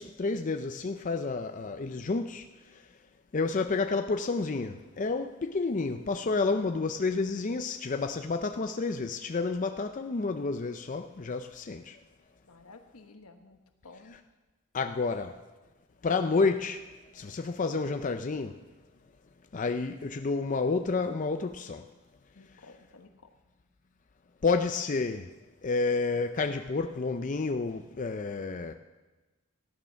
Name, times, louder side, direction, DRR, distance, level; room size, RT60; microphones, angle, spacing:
voice 1, 0.0-2.5 2.7-2.9 3.3-12.0 14.7-15.4 16.0-16.8 17.1-18.6 19.5-21.9 24.4-25.3 25.6-28.7, left 4 dB, 35° left, 0.4 m, -30 dB
voice 2, 12.5-14.2 22.3-23.3, left 3 dB, 80° left, 1.2 m, -53 dB
15.0 x 9.4 x 6.3 m
head